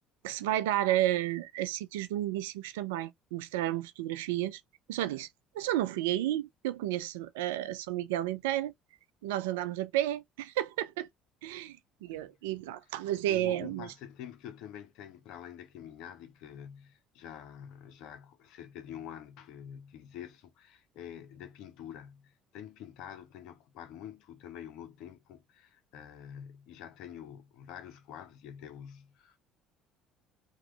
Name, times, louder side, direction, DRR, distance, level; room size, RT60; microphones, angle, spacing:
voice 1, 0.2-4.6 4.9-5.3 5.5-8.7 9.2-11.1 11.4-13.9, right 14 dB, 80° right, 0.3 m, -32 dB
voice 2, 13.3-29.4, left 9 dB, 65° left, 0.6 m, -47 dB
3.0 x 2.2 x 3.2 m
hypercardioid pair, 60°, 0 cm